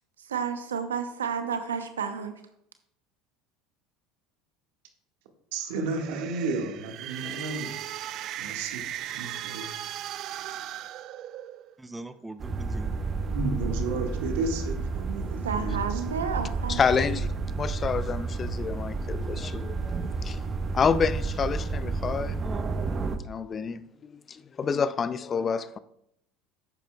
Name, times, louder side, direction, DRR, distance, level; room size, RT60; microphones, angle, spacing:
voice 1, 0.2-2.3 15.4-17.3, right 6 dB, 85° right, 0.8 m, -31 dB
voice 2, 5.5-7.7 8.4-8.8 9.1-9.6 13.2-15.8 16.0-16.2, right 3 dB, 70° right, 1.7 m, -32 dB
sound 1, 5.7-11.8, right 12 dB, 55° right, 0.5 m, -37 dB
voice 3, 11.8-12.9 22.4-22.6, right 2 dB, 10° right, 0.6 m, -41 dB
sound 2, 12.4-23.2, right 4 dB, 35° right, 0.9 m, -31 dB
voice 4, 16.7-17.3 17.5-20.4 20.7-22.4 23.2-25.8, left 6 dB, 35° left, 0.5 m, -28 dB
11.0 x 8.6 x 2.3 m
hypercardioid pair, 75°, 0 cm